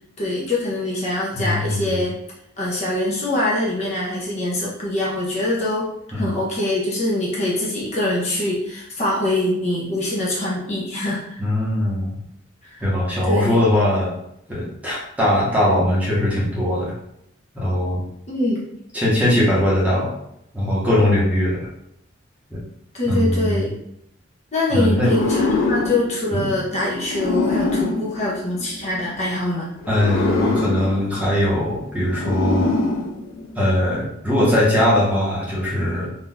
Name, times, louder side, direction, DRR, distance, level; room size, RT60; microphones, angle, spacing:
voice 1, 0.2-2.1 2.6-5.9 6.2-11.4 12.6-12.7 13.2-13.6 18.3-18.6 22.9-23.7 24.5-29.7, left 1 dB, 35° left, -5 dB, 0.7 m, -23 dB
voice 2, 1.3-2.0 6.1-6.3 11.4-12.2 12.8-14.1 14.5-16.9 17.5-18.0 18.9-20.1 20.5-21.6 22.5-22.6 23.1-23.6 24.7-25.2 26.3-26.5 29.9-32.7 33.6-36.1, left 1 dB, 10° right, -7 dB, 0.9 m, -20 dB
sound 1, 24.9-29.1 29.8-33.7, left 3 dB, 75° left, 0.5 m, -25 dB
2.7 x 2.4 x 3.8 m, 0.77 s
head